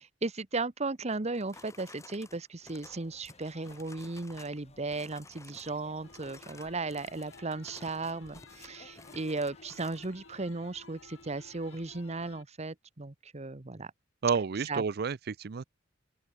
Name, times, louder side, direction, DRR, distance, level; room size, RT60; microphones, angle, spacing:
voice 1, 0.0-13.9 14.7-14.8, right 3 dB, 35° right, 1.0 m, -36 dB
sound 1, 1.1-4.6 4.9-5.7 6.1-10.1, left 3 dB, 15° left, 1.8 m, -54 dB
sound 2, 2.6-12.4, left 2 dB, 35° left, 4.2 m, -60 dB
sound 3, 6.0-12.4, left 4 dB, 85° left, 1.9 m, -55 dB
voice 2, 14.2-15.6, right 5 dB, 55° right, 0.5 m, -30 dB
open air
head